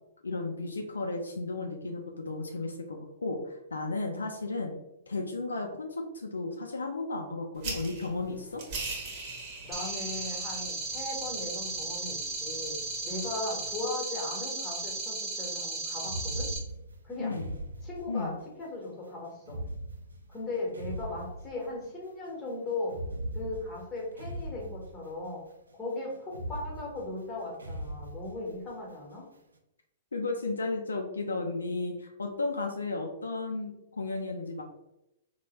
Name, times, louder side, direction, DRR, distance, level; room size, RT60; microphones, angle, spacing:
voice 1, 0.2-4.7 5.1-8.6 17.2-17.5 18.1-18.4 30.1-34.6, left 3 dB, 85° left, 2 dB, 0.3 m, -34 dB
sound 1, 7.6-13.7, right 3 dB, 45° right, 1.0 m, -42 dB
voice 2, 9.6-12.8 13.0-16.5 17.0-17.3 17.8-18.3 18.6-19.6 20.3-23.0 23.3-25.4 25.7-29.3, left 2 dB, 20° left, -3 dB, 1.2 m, -38 dB
sound 2, 9.7-16.6, right 3 dB, 15° right, 1.0 m, -35 dB
sound 3, 14.8-15.0 16.0-18.5 19.4-22.0 22.8-25.4 26.3-28.8, right 1 dB, 85° right, 0.4 m, -40 dB
3.2 x 2.1 x 2.9 m, 0.87 s
hypercardioid pair, 115°, 0 cm